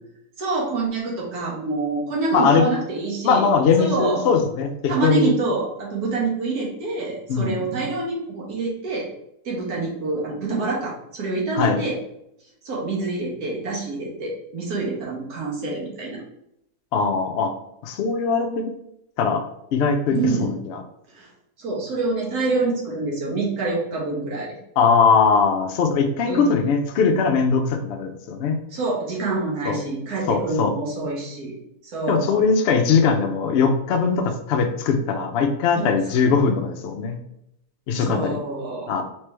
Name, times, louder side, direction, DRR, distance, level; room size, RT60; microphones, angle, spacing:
voice 1, 0.4-3.5 3.8-4.3 4.9-9.1 9.4-12.0 12.6-16.2 20.1-20.5 21.1-21.3 21.6-24.6 26.3-26.6 28.7-31.6 31.9-32.4 35.7-35.9 37.9-38.9, right 3 dB, 75° right, -4 dB, 1.4 m, -26 dB
voice 2, 2.3-2.7 3.2-5.3 7.3-7.6 11.5-11.8 16.9-17.5 17.8-18.6 19.2-19.4 19.7-20.8 24.8-28.6 29.7-29.8 30.3-30.7 32.1-37.2 37.9-38.4 38.9-39.0, left 5 dB, 75° left, 5 dB, 0.6 m, -20 dB
3.3 x 3.3 x 3.2 m, 0.81 s
omnidirectional pair, 1.7 m